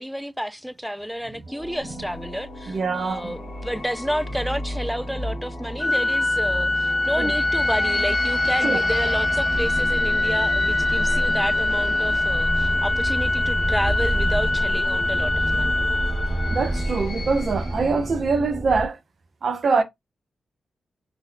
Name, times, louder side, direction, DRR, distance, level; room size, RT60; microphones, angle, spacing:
voice 1, 0.0-15.7, equal, ahead, 0.3 m, -30 dB
sound 1, 1.4-18.2, left 4 dB, 75° left, 0.9 m, -38 dB
sound 2, 1.5-18.9, right 1 dB, 20° right, 0.8 m, -30 dB
voice 2, 2.7-3.3 7.2-7.3 8.6-8.8 16.5-19.0 19.4-19.8, right 4 dB, 60° right, 0.7 m, -24 dB
Organ, 5.8-16.9, left 2 dB, 30° left, 0.9 m, -23 dB
3.0 x 2.2 x 3.6 m
supercardioid pair, 45°, 0 cm